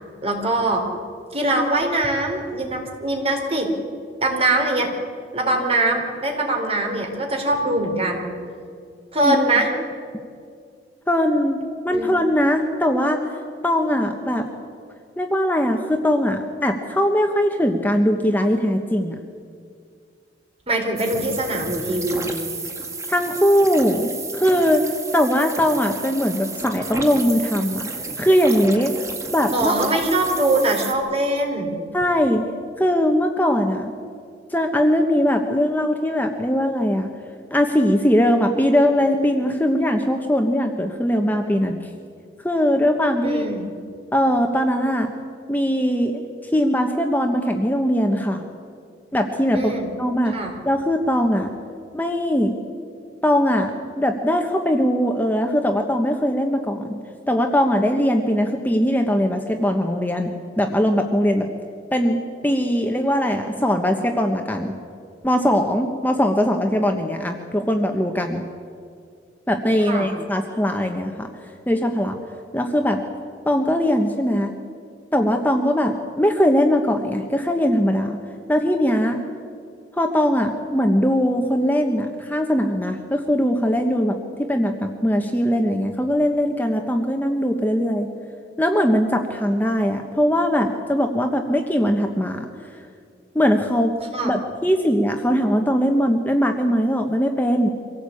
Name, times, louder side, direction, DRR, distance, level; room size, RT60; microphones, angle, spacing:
voice 1, 0.2-0.9 1.3-3.7 4.2-4.9 5.3-8.3 9.1-9.7 11.9-12.1 20.7-22.4 29.5-31.8 43.2-43.6 49.5-49.9 50.3-50.5 69.8-70.1 94.1-94.3, right 2 dB, 35° right, 2 dB, 4.0 m, -22 dB
voice 2, 11.1-13.3 13.6-14.5 15.2-19.2 23.1-24.8 25.1-27.9 28.2-28.9 29.3-29.8 31.9-32.4 32.8-33.9 34.5-37.1 37.5-41.8 42.4-43.4 44.1-45.1 45.5-48.4 49.1-51.5 51.9-52.5 53.2-53.7 54.0-57.0 57.3-61.5 61.9-62.2 62.4-64.8 65.2-68.4 69.5-71.3 71.7-72.2 72.5-73.0 73.5-74.5 75.1-78.2 78.5-79.2 80.0-88.1 88.6-92.5 93.3-93.9 94.2-97.7, equal, 10° left, 4 dB, 1.2 m, -20 dB
sound 1, 21.0-30.9, right 3 dB, 15° right, 2.0 m, -32 dB
25.0 x 16.5 x 8.5 m, 2.3 s
head